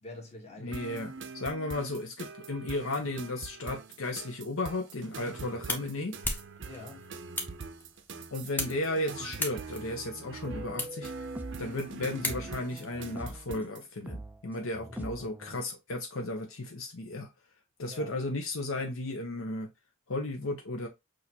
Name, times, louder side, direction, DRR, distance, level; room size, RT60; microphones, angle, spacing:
voice 1, 0.0-1.0 6.7-7.1 14.8-15.1 17.9-18.2, left 2 dB, 30° left, 1.4 m, -46 dB
voice 2, 0.6-6.1 8.3-11.1 11.6-17.3 17.8-19.7 20.1-20.9, left 2 dB, 70° left, 0.8 m, -34 dB
sound 1, 0.7-13.9, right 4 dB, 55° right, 0.6 m, -44 dB
sound 2, 5.0-12.8, left 1 dB, 10° left, 0.7 m, -39 dB
sound 3, 10.4-11.7 12.2-13.5 14.1-15.6, right 1 dB, 10° right, 0.3 m, -42 dB
6.3 x 2.6 x 2.8 m
head